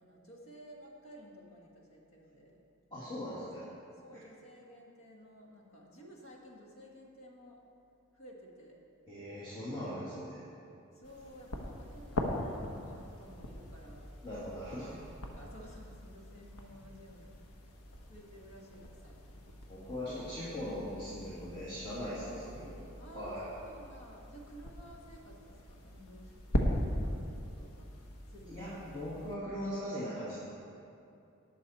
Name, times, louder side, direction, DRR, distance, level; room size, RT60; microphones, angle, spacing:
voice 1, 0.0-2.6 3.6-7.6 8.1-8.8 10.9-14.1 14.9-17.4 18.1-19.6 22.2-26.4 26.8-27.2 27.5-27.9 28.3-28.7, equal, 70° left, -2 dB, 1.9 m, -54 dB
voice 2, 2.9-3.7 4.1-4.2 9.1-10.5 14.2-15.0 19.7-22.7 23.1-23.5 28.5-30.4, equal, 20° left, -11 dB, 2.2 m, -40 dB
sound 1, 11.0-29.4, left 1 dB, 85° left, 1.1 m, -41 dB
18.5 x 6.5 x 4.3 m, 2.6 s
head